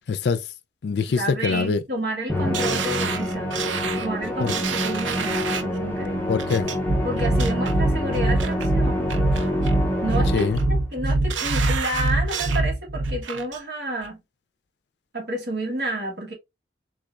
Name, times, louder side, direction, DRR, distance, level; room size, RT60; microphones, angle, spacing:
voice 1, 0.1-0.5 0.8-1.8 4.4-4.5 6.3-6.7 10.3-10.6, left 5 dB, 65° left, 0.4 m, -23 dB
voice 2, 1.2-6.3 7.0-9.1 10.0-14.2 15.1-16.3, right 1 dB, 60° right, 1.4 m, -30 dB
Musical instrument, 2.3-10.8, left 1 dB, 10° left, 0.7 m, -27 dB
sound 1, 2.5-5.8 6.4-6.8 7.2-7.7 8.1-8.7 9.1-9.8 10.1-10.6 11.1-12.7 13.0-13.6 14.0-14.1, right 7 dB, 90° right, 0.5 m, -31 dB
sound 2, 6.9-13.2, right 2 dB, 40° right, 0.5 m, -23 dB
3.7 x 3.1 x 2.4 m
head